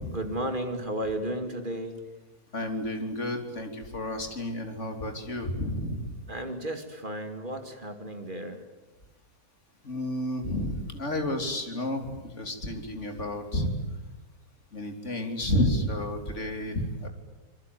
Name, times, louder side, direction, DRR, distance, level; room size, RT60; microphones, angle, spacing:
voice 1, 0.1-2.0 6.3-8.6, right 1 dB, 30° right, 6 dB, 2.6 m, -33 dB
voice 2, 2.5-6.1 9.8-13.7 14.7-17.1, left 1 dB, 45° left, 5 dB, 3.5 m, -31 dB
26.0 x 22.5 x 9.5 m, 1.1 s
omnidirectional pair, 1.8 m